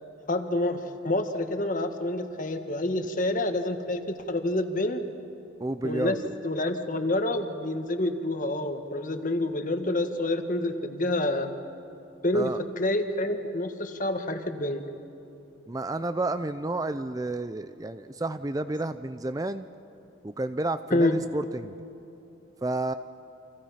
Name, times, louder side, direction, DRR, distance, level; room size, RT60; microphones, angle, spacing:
voice 1, 0.3-5.0 5.8-6.2 6.4-11.5 12.2-14.8 20.9-21.2, left 1 dB, 40° left, 7 dB, 1.6 m, -28 dB
voice 2, 5.6-6.4 12.3-12.6 15.7-19.7 20.2-21.8 22.6-22.9, right 2 dB, 20° right, 11 dB, 0.5 m, -31 dB
29.5 x 26.0 x 5.8 m, 2.9 s
head